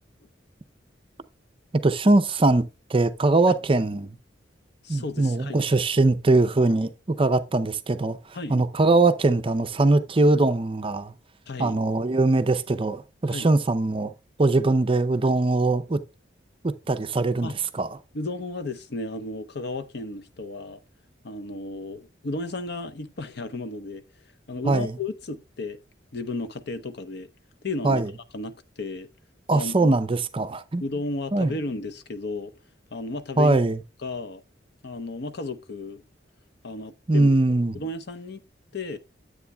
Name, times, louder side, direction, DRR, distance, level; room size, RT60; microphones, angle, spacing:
voice 1, 1.8-4.2 4.9-11.1 11.6-14.1 14.4-16.0 16.6-18.0 24.7-24.9 27.8-28.1 29.5-30.8 31.3-31.5 33.4-33.8 37.1-37.8, right 2 dB, 30° right, 0.6 m, -22 dB
voice 2, 4.8-5.6 8.3-8.6 11.5-11.8 13.3-13.5 17.4-17.6 18.1-20.8 21.2-24.0 24.5-25.8 26.1-27.3 27.6-28.0 28.3-29.1 29.5-29.9 30.8-32.5 32.9-33.6 34.0-34.4 34.8-36.0 36.6-37.3 37.7-38.4 38.7-39.0, left 2 dB, 60° left, 0.8 m, -33 dB
9.7 x 8.1 x 2.2 m
head